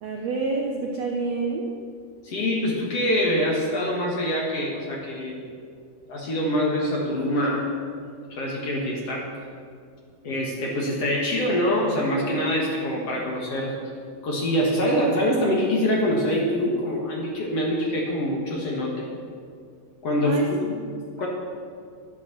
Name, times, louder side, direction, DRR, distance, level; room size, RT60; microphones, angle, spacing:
voice 1, 0.0-1.7 20.2-20.5, right 4 dB, 90° right, 1 dB, 1.4 m, -27 dB
voice 2, 2.2-5.5 6.1-7.7 8.3-9.3 10.2-13.8 14.2-19.1 20.0-20.8 21.2-21.3, equal, 50° left, -2 dB, 2.0 m, -25 dB
11.5 x 8.5 x 6.8 m, 2.2 s
omnidirectional pair, 4.4 m